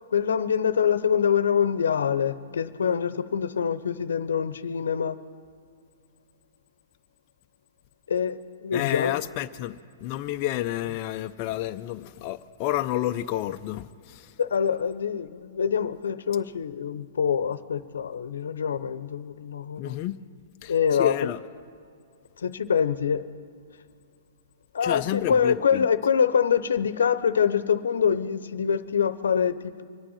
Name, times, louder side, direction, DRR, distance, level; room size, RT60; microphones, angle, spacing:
voice 1, 0.1-5.2 8.1-9.2 14.4-20.0 20.7-21.1 22.4-23.2 24.7-29.8, left 7 dB, 85° left, 0.8 m, -25 dB
voice 2, 8.7-14.3 19.8-20.2 20.6-21.4 24.8-25.9, left 14 dB, 40° left, 0.5 m, -30 dB
25.0 x 8.9 x 5.7 m
hypercardioid pair, 135°, 0 cm